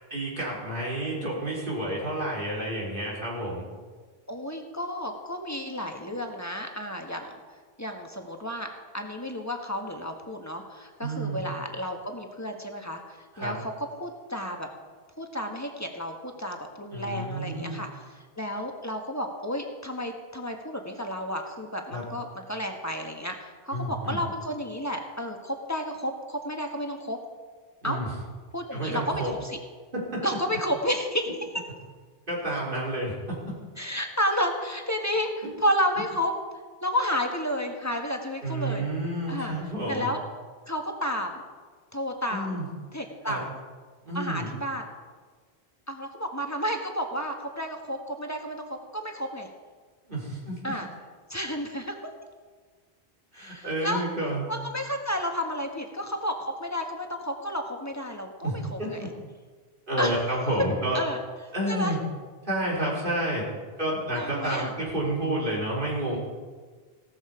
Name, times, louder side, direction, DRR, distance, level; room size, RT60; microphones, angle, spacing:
voice 1, 0.1-3.7 11.0-11.4 13.3-13.6 16.9-17.9 21.9-22.0 23.7-24.2 27.8-28.1 28.7-29.3 30.1-30.2 32.3-33.4 38.4-40.1 42.3-42.7 43.2-43.4 44.0-44.5 50.1-50.6 53.3-54.5 58.4-59.1 59.9-61.0 61.5-62.0 62.4-63.5 63.8-66.2, right 1 dB, 55° right, -4 dB, 4.3 m, -30 dB
voice 2, 4.3-7.4 7.8-14.7 15.2-17.9 18.1-27.2 27.8-28.0 28.5-29.6 30.2-31.3 33.8-36.3 36.8-38.8 39.3-39.5 39.9-40.2 40.7-41.4 41.9-42.6 42.9-43.5 44.1-44.9 45.9-49.5 50.6-50.9 51.3-51.9 53.3-54.0 54.5-59.0 60.0-60.2 60.9-61.2 61.7-61.9 64.1-64.7, equal, 15° left, 3 dB, 1.6 m, -31 dB
16.5 x 13.0 x 5.1 m, 1.4 s
omnidirectional pair, 1.1 m